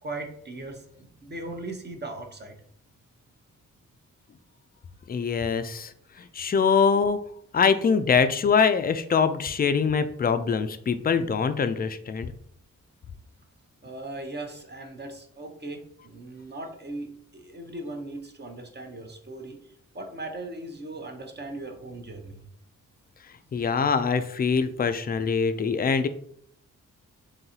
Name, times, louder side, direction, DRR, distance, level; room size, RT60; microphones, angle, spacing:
voice 1, 0.0-2.6 13.8-19.6 19.9-22.4, right 2 dB, 30° right, 4 dB, 0.8 m, -38 dB
voice 2, 5.1-5.9 6.3-7.2 7.5-12.3 23.5-26.1, left 6 dB, 30° left, 10 dB, 0.4 m, -23 dB
3.9 x 2.7 x 2.8 m, 0.66 s
cardioid pair, 55°, 33 cm